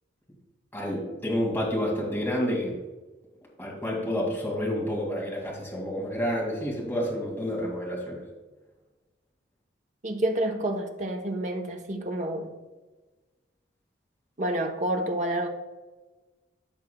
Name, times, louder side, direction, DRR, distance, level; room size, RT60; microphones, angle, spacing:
voice 1, 0.7-2.8 3.6-8.2, equal, 10° left, -3 dB, 2.2 m, -29 dB
voice 2, 10.0-12.5 14.4-15.5, right 1 dB, 40° right, 3 dB, 0.9 m, -29 dB
14.5 x 5.6 x 2.3 m, 1.2 s
head